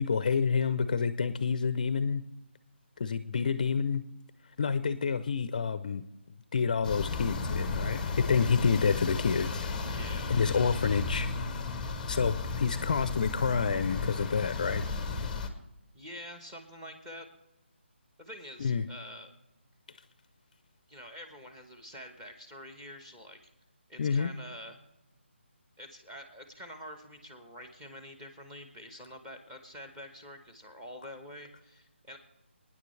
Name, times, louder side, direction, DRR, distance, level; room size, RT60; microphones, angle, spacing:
voice 1, 0.0-2.2 3.0-4.1 4.6-6.0 6.5-9.7 10.3-11.3 12.1-14.9 18.6-18.9 24.0-24.3, left 5 dB, 40° left, 13 dB, 0.5 m, -28 dB
sound 1, 6.8-15.5, left 4 dB, 5° left, 0.8 m, -34 dB
voice 2, 9.9-10.4 15.9-17.3 18.2-19.3 20.9-23.4 23.9-24.8 25.8-32.2, equal, 10° right, 5 dB, 1.2 m, -46 dB
28.0 x 9.7 x 3.3 m, 0.93 s
figure-of-eight pair, 165°, 7 cm